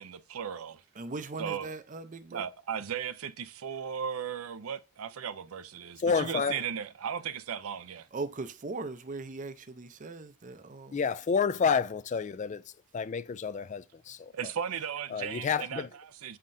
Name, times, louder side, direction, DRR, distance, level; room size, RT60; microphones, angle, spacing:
voice 1, 0.0-0.8 1.4-1.7 2.3-8.1 14.3-16.4, right 8 dB, 85° right, 0.5 m, -36 dB
voice 2, 1.0-2.5 8.1-11.0, right 3 dB, 35° right, 0.6 m, -39 dB
voice 3, 6.0-6.6 10.9-12.6 12.9-14.3 15.1-15.9, left 6 dB, 35° left, 0.3 m, -29 dB
8.6 x 5.7 x 2.6 m
head